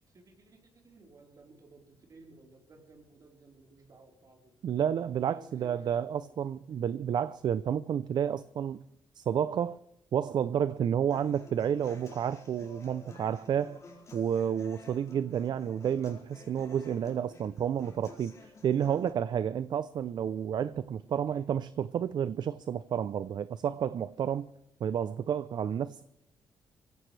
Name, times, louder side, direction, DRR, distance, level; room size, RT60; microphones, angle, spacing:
voice 1, 0.1-4.6 5.2-6.4 16.5-16.8 21.1-21.5, right 3 dB, 45° right, 1 dB, 4.1 m, -56 dB
voice 2, 4.6-8.8 9.2-9.8 10.1-13.8 14.1-24.5 24.8-26.0, right 8 dB, 60° right, 15 dB, 0.5 m, -30 dB
Human voice / Acoustic guitar, 11.1-19.1, left 3 dB, 40° left, 4.3 m, -52 dB
23.5 x 16.0 x 3.3 m, 0.80 s
cardioid pair, 100°, 8 cm